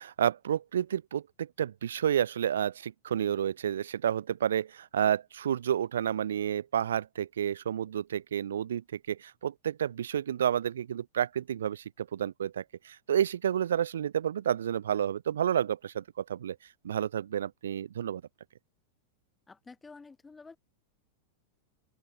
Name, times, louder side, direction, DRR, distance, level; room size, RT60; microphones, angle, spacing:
voice 1, 0.0-16.6 16.8-18.2, right 9 dB, 65° right, 1.2 m, -30 dB
voice 2, 19.5-20.6, left 4 dB, 10° left, 3.2 m, -50 dB
figure-of-eight pair, 90°, 0 cm